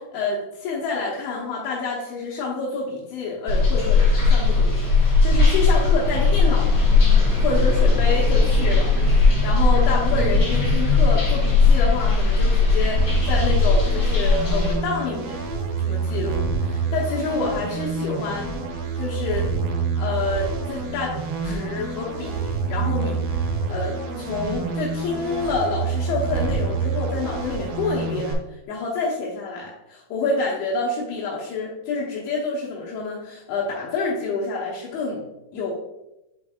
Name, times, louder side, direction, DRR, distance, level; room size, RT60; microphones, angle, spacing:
voice 1, 0.0-6.7 7.4-15.4 15.8-18.5 19.0-19.5 20.0-35.2 35.5-35.7, left 3 dB, 80° left, -6 dB, 2.2 m, -28 dB
sound 1, 3.5-14.8, left 3 dB, 65° left, 1.0 m, -18 dB
sound 2, 13.0-28.3, right 5 dB, 85° right, 3.3 m, -27 dB
7.8 x 5.3 x 2.4 m, 0.91 s
omnidirectional pair, 5.9 m